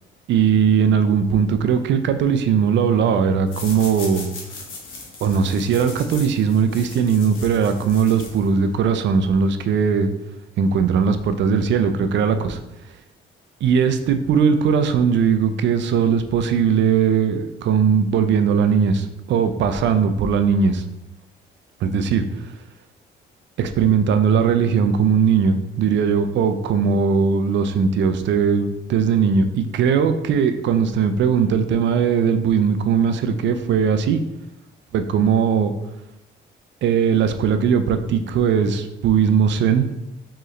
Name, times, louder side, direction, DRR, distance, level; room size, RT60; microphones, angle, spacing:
voice 1, 0.3-4.3 5.2-10.1 10.6-12.6 13.6-20.8 21.8-22.2 23.6-34.2 34.9-35.7 36.8-39.9, right 6 dB, 65° right, 9 dB, 0.4 m, -19 dB
sound 1, 3.5-8.8, left 4 dB, 90° left, 1.0 m, -38 dB
4.6 x 3.1 x 3.1 m, 0.91 s
cardioid pair, 90°, 20 cm